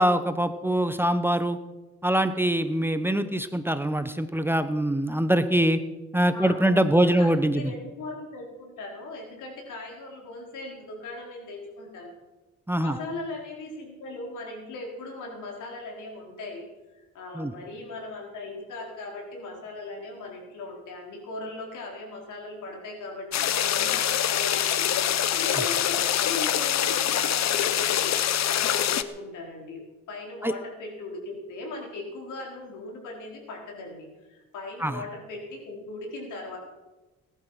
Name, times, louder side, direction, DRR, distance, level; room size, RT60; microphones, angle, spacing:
voice 1, 0.0-1.6 2.0-5.8 6.1-7.7 12.7-12.9 17.3-17.5 30.4-30.5 34.8-35.0, right 1 dB, 5° right, 10 dB, 0.9 m, -23 dB
voice 2, 6.2-12.1 12.8-16.7 17.1-24.9 25.3-28.1 28.5-36.6, left 2 dB, 80° left, 1 dB, 4.4 m, -39 dB
sound 1, 23.3-29.0, left 10 dB, 60° left, 0.9 m, -25 dB
19.5 x 11.0 x 5.8 m, 1.2 s
cardioid pair, 90°, 30 cm